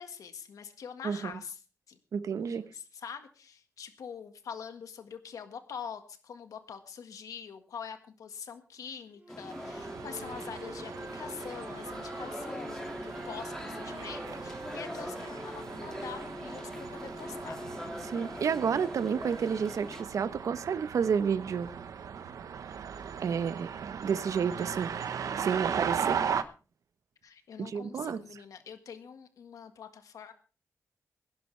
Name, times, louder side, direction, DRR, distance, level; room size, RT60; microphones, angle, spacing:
voice 1, 0.0-2.0 2.4-17.6 27.2-30.3, left 7 dB, 90° left, 1.7 m, -44 dB
voice 2, 2.1-2.7 18.0-21.7 23.2-24.9 25.4-26.2 27.6-28.2, right 7 dB, 70° right, 1.0 m, -30 dB
Wind instrument woodwind instrument, 9.2-12.6 13.0-16.7, right 1 dB, 25° right, 3.4 m, -50 dB
sound 1, 9.3-20.0, left 1 dB, 10° left, 2.3 m, -42 dB
sound 2, 9.5-26.4, right 7 dB, 90° right, 1.1 m, -38 dB
21.5 x 11.5 x 3.3 m
wide cardioid pair, 120°, 6 cm